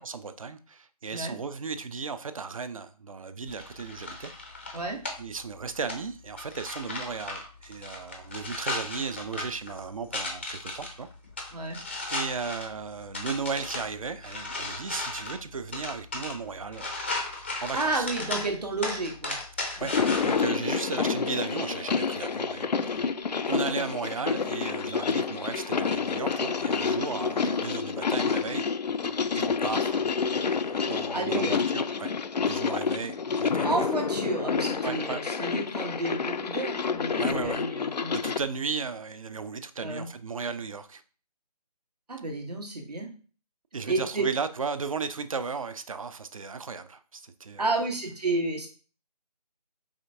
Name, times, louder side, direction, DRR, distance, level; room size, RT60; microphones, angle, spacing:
voice 1, 0.0-4.3 5.2-11.1 11.4-11.7 12.1-17.0 17.6-18.1 19.8-19.9 20.2-23.1 23.5-28.7 29.3-32.1 32.4-33.9 34.8-35.2 37.2-37.6 38.1-41.0 43.7-47.7, right 5 dB, 55° right, 11 dB, 0.4 m, -35 dB
sound 1, 3.5-20.4, left 2 dB, 15° left, 0.4 m, -37 dB
voice 2, 17.7-19.4 31.1-31.6 33.6-38.2 39.8-40.1 42.1-43.1 43.8-44.2 47.6-48.7, right 2 dB, 75° right, 1 dB, 1.3 m, -31 dB
sound 2, 19.8-38.4, left 5 dB, 90° left, 0.4 m, -28 dB
4.9 x 3.3 x 2.7 m, 0.38 s
figure-of-eight pair, 160°, 21 cm